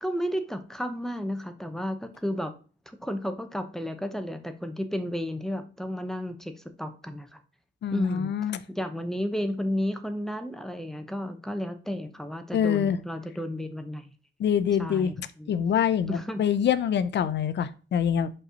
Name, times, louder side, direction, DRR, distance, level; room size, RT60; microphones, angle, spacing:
voice 1, 0.0-2.5 2.9-6.5 6.8-7.4 7.9-8.3 8.7-14.1 14.8-15.1 15.4-15.5 16.1-16.4, equal, ahead, 8 dB, 0.7 m, -32 dB
voice 2, 7.8-8.6 12.5-13.0 14.4-18.3, left 8 dB, 60° left, 15 dB, 0.6 m, -25 dB
5.5 x 4.1 x 6.2 m, 0.37 s
wide cardioid pair, 155°, 20 cm